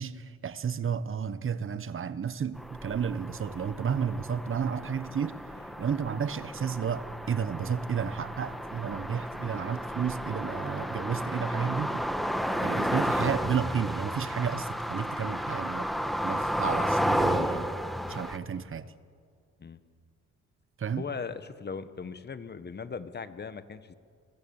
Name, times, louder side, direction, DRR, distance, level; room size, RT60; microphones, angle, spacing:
voice 1, 0.0-5.4 5.8-12.1 12.6-15.9 16.2-17.7 18.1-18.9 20.8-21.0, right 7 dB, 45° right, 1.2 m, -32 dB
sound 1, 2.6-18.4, equal, ahead, 1.6 m, -32 dB
voice 2, 20.9-23.9, left 5 dB, 35° left, 1.4 m, -38 dB
30.0 x 22.0 x 7.3 m
cardioid pair, 90°, 30 cm